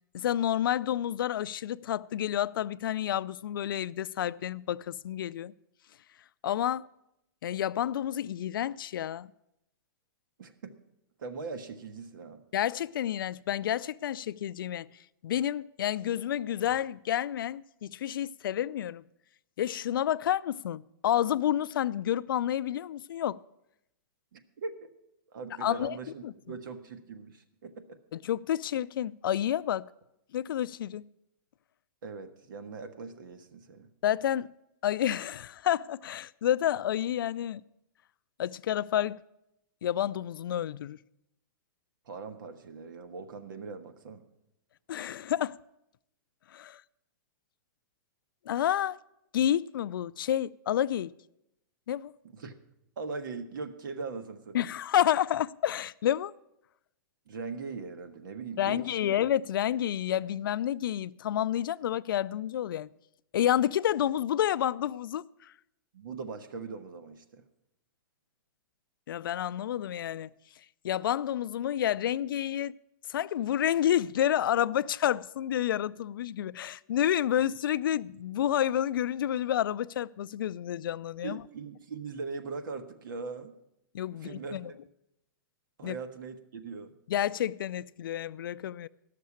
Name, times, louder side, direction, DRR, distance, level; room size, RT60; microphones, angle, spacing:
voice 1, 0.1-5.5 6.4-6.9 7.4-9.3 12.5-14.9 15.2-19.0 19.6-23.4 25.6-26.0 26.2-26.3 28.1-29.9 30.3-31.0 34.0-34.5 34.8-37.6 38.4-39.2 39.8-41.0 44.9-45.6 46.5-46.8 48.5-49.0 49.3-51.1 51.9-52.1 54.5-56.3 58.6-62.9 63.3-65.5 69.1-70.3 70.8-72.7 73.1-81.4 83.9-84.7 85.8-86.0 87.1-88.9, left 11 dB, 75° left, 0.4 m, -29 dB
voice 2, 10.4-10.8 11.2-12.4 24.3-24.9 25.3-28.0 32.0-33.9 42.1-44.2 52.2-52.6 53.0-54.7 57.3-59.2 65.9-67.4 81.2-83.5 84.1-84.8 85.8-86.9, right 4 dB, 65° right, 1.3 m, -40 dB
12.5 x 6.6 x 8.4 m
hypercardioid pair, 170°, 11 cm